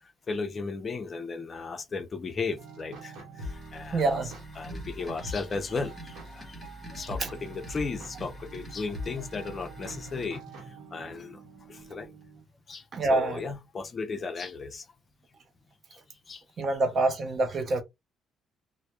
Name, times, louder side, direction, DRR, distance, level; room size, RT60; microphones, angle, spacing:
voice 1, 0.3-4.2 4.6-6.6 6.9-11.4 11.7-12.1 12.7-12.8 13.1-14.8 16.3-16.4, left 4 dB, 30° left, 0.4 m, -35 dB
sound 1, 2.6-12.4, right 1 dB, 80° right, 0.9 m, -45 dB
sound 2, 3.4-10.3, right 1 dB, 10° left, 1.0 m, -45 dB
voice 2, 3.9-4.4 7.2-7.3 12.9-13.4 16.6-17.8, right 2 dB, 40° right, 0.5 m, -26 dB
2.1 x 2.1 x 2.9 m
cardioid pair, 125°, 0 cm